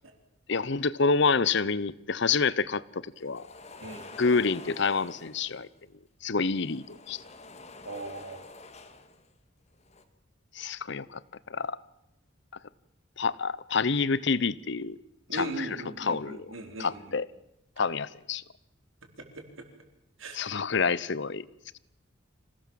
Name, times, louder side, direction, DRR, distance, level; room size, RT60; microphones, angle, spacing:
voice 1, 0.5-2.8 3.2-3.4 4.2-5.7 6.2-7.2 10.5-11.2 11.5-11.8 13.2-15.0 15.3-15.7 16.0-16.5 16.8-17.3 17.8-18.4 20.3-21.5, left 4 dB, 60° left, 0.8 m, -27 dB
sound 1, 3.2-5.7 6.4-9.3 9.7-10.0, left 3 dB, 35° left, 1.7 m, -48 dB
voice 2, 7.8-8.4 15.3-17.1 19.0-19.7 20.2-20.4, right 2 dB, 80° right, 4.6 m, -39 dB
26.0 x 17.5 x 7.6 m
head